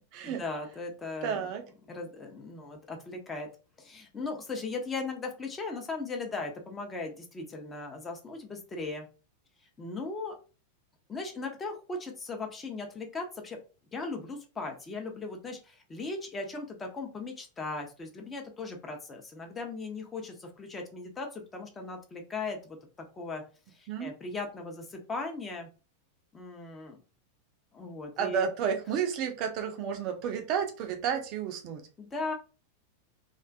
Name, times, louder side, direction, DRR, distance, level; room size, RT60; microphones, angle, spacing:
voice 1, 0.2-1.5 1.9-3.5 3.8-9.1 9.8-10.3 11.1-13.6 13.9-22.8 23.1-23.4 23.7-25.7 26.3-27.0 27.7-28.5 32.0-32.3, left 3 dB, 20° left, 3 dB, 0.6 m, -38 dB
voice 2, 1.2-1.6 23.9-24.1 28.2-31.8, right 7 dB, 40° right, 5 dB, 0.4 m, -31 dB
2.4 x 2.3 x 2.3 m, 0.34 s
figure-of-eight pair, 90°, 0 cm